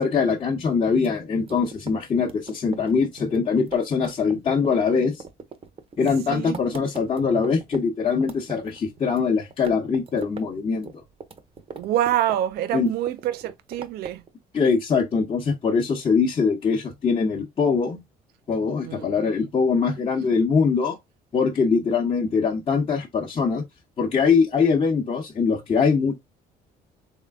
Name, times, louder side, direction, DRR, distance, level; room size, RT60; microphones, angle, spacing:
voice 1, 0.0-5.2 6.0-10.9 12.7-12.9 14.5-18.0 18.5-21.0 21.3-23.6 24.0-26.1, left 5 dB, 35° left, 0.9 m, -22 dB
sound 1, 0.9-7.8 8.1-9.2 9.5-10.5 10.7-12.6 12.9-14.3, right 5 dB, 35° right, 0.7 m, -40 dB
voice 2, 6.3-6.6 11.7-14.2 18.8-19.1, right 12 dB, 70° right, 0.4 m, -26 dB
3.6 x 3.3 x 3.5 m
cardioid pair, 110°, 17 cm